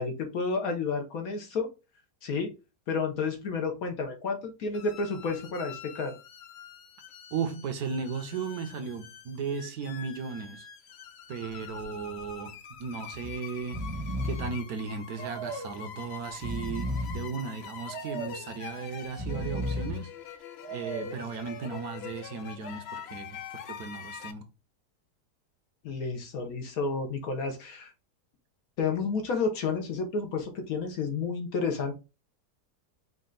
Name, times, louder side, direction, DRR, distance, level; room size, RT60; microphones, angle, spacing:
voice 1, 0.0-1.7 2.2-2.5 2.9-6.2 25.8-27.9 28.8-32.0, left 4 dB, 65° left, 1.2 m, -31 dB
sound 1, 4.7-24.3, left 8 dB, 85° left, 0.5 m, -45 dB
voice 2, 7.3-10.7 11.3-13.9 14.2-20.4 20.7-24.5, right 5 dB, 70° right, 1.2 m, -36 dB
Breathing, 11.5-11.8 12.2-12.3 13.1-13.3 13.6-14.6 15.2-15.8 16.3-17.3 17.9-18.5 19.0-20.0 20.6-21.3, equal, 25° right, 0.8 m, -35 dB
5.2 x 2.4 x 3.8 m
omnidirectional pair, 1.7 m